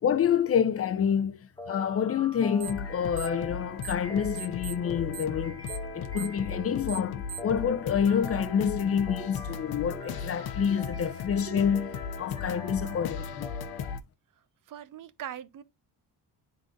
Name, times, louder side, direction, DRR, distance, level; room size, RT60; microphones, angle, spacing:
voice 1, 0.0-5.6 5.9-11.9 12.2-13.5, left 8 dB, 35° left, 0.7 m, -28 dB
sound 1, 1.6-13.9, left 1 dB, 10° left, 0.9 m, -45 dB
sound 2, 2.6-14.0, left 6 dB, 60° left, 0.9 m, -37 dB
sound 3, 2.6-2.9 3.1-4.1 4.3-7.6, right 11 dB, 70° right, 1.2 m, -41 dB
voice 2, 14.7-15.6, right 10 dB, 50° right, 0.8 m, -40 dB
10.5 x 3.9 x 2.5 m
cardioid pair, 120°, 42 cm